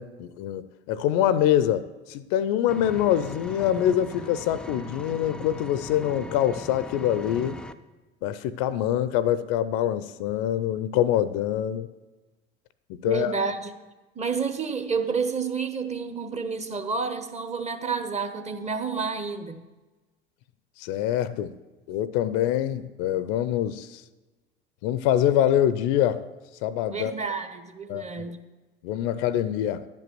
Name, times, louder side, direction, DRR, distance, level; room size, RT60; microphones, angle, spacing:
voice 1, 0.0-7.6 8.2-11.9 12.9-13.4 20.8-21.5 21.9-24.0 24.8-26.3 26.6-27.1 27.9-28.3 28.8-29.9, left 11 dB, 60° left, 15 dB, 0.5 m, -25 dB
Engine, 2.7-7.7, equal, 5° left, 0.4 m, -39 dB
voice 2, 13.0-13.7 14.1-19.6 26.9-28.4, right 5 dB, 20° right, 8 dB, 1.0 m, -29 dB
10.5 x 5.3 x 7.7 m, 1.2 s
hypercardioid pair, 70°, 30 cm